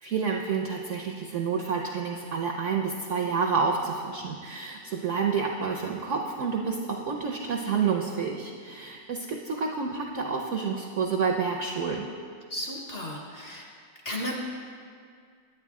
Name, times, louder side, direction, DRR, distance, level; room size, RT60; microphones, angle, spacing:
voice 1, 0.0-12.1, right 5 dB, 70° right, 1 dB, 0.7 m, -29 dB
voice 2, 12.5-13.7 14.0-14.3, left 1 dB, 45° left, -1 dB, 0.9 m, -34 dB
9.4 x 8.8 x 3.6 m, 2.1 s
omnidirectional pair, 1.8 m